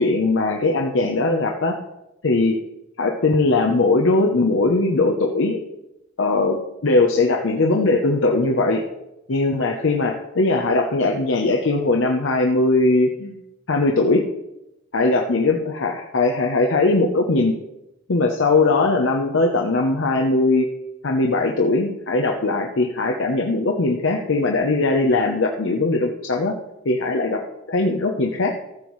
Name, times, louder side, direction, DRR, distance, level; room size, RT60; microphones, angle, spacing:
voice 1, 0.0-1.8 2.2-2.6 3.0-5.6 6.2-6.6 6.8-8.8 9.3-13.4 13.7-14.2 14.9-17.5 18.1-20.7 21.0-26.5 26.8-27.4 27.7-28.6, left 2 dB, 70° left, 1 dB, 0.8 m, -20 dB
14.0 x 7.2 x 3.1 m, 0.91 s
head